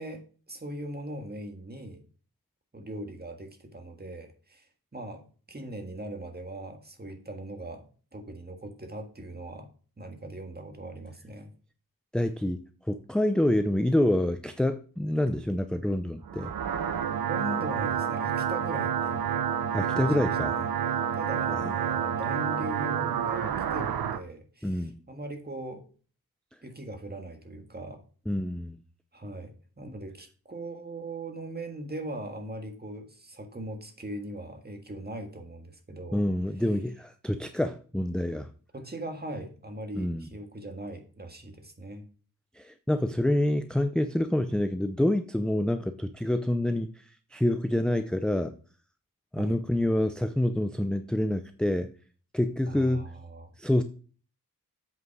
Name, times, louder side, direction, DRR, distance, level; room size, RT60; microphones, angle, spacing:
voice 1, 0.0-2.0 2.7-9.7 10.0-11.5 17.2-19.4 19.9-20.8 21.1-25.8 26.6-28.0 29.1-36.2 38.7-42.0 49.4-49.6 52.7-53.5, right 1 dB, 25° right, 1.7 m, -40 dB
voice 2, 12.1-12.6 12.9-16.5 19.7-20.6 24.6-25.0 28.3-28.8 36.1-38.5 39.9-40.3 42.5-48.5 49.3-51.9 52.3-53.0 53.6-53.8, left 1 dB, ahead, 0.5 m, -27 dB
sound 1, 16.2-24.2, right 8 dB, 85° right, 0.7 m, -29 dB
7.9 x 5.3 x 4.7 m
wide cardioid pair, 80°, 35 cm